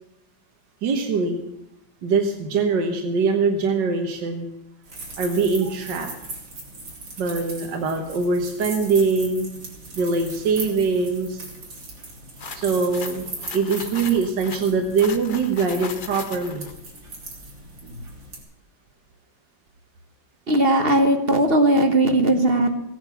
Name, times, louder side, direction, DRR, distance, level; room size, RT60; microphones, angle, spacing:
voice 1, 0.8-1.4 2.0-4.5 5.2-6.1 7.2-9.5 10.0-11.5 12.5-16.7, right 4 dB, 70° right, 3 dB, 2.0 m, -23 dB
sound 1, 4.8-18.4, right 2 dB, 85° right, 4.0 m, -39 dB
sound 2, 12.4-16.7, left 6 dB, 50° left, 0.6 m, -38 dB
voice 2, 20.5-22.7, right 1 dB, 35° right, 6 dB, 1.3 m, -18 dB
16.5 x 9.6 x 7.0 m, 0.87 s
omnidirectional pair, 2.0 m